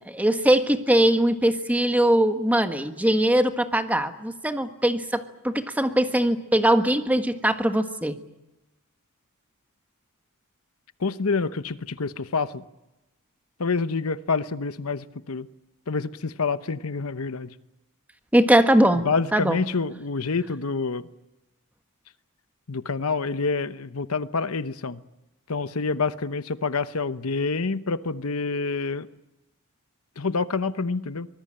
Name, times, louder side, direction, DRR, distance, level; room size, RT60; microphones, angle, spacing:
voice 1, 0.0-8.2 18.3-19.6, right 1 dB, 5° right, 1.5 m, -21 dB
voice 2, 11.0-12.6 13.6-15.5 15.9-17.5 19.0-21.0 22.7-25.0 25.5-29.1 30.2-31.3, left 4 dB, 75° left, 0.9 m, -27 dB
25.0 x 20.0 x 8.9 m
head